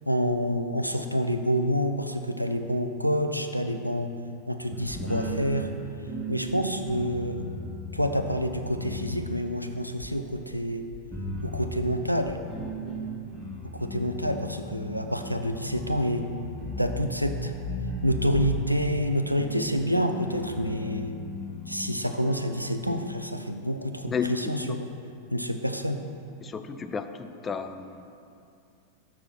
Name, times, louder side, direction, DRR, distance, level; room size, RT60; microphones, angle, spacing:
voice 1, 0.1-4.1 4.5-5.7 6.3-7.4 7.9-10.8 11.4-12.4 13.7-16.3 16.8-17.5 18.0-21.1 21.7-24.9 25.3-26.0, equal, 90° right, 6 dB, 0.4 m, -28 dB
sound 1, 4.7-9.6 10.0-10.1 10.9-23.0, equal, 5° right, 1.8 m, -36 dB
voice 2, 24.1-24.8 26.4-28.2, left 6 dB, 20° left, 9 dB, 0.4 m, -33 dB
6.6 x 5.8 x 6.1 m, 2.5 s
figure-of-eight pair, 90°, 0 cm